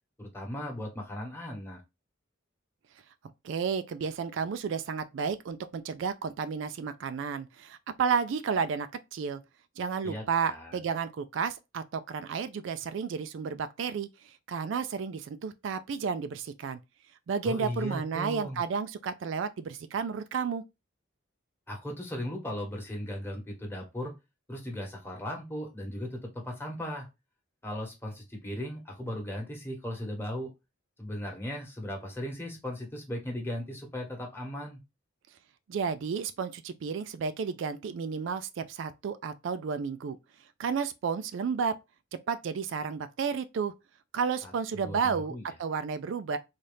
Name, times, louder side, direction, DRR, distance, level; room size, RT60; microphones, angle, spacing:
voice 1, 0.2-1.8 10.0-10.8 17.4-18.6 21.7-24.1 24.5-26.2 26.4-27.1 27.6-30.5 31.0-34.8 44.4-45.5, left 1 dB, 10° left, 1.1 m, -37 dB
voice 2, 3.4-9.4 9.8-16.8 17.3-20.6 35.7-40.2 40.6-41.7 42.3-43.7 44.1-46.4, right 6 dB, 65° right, 0.3 m, -32 dB
4.1 x 2.3 x 3.3 m
head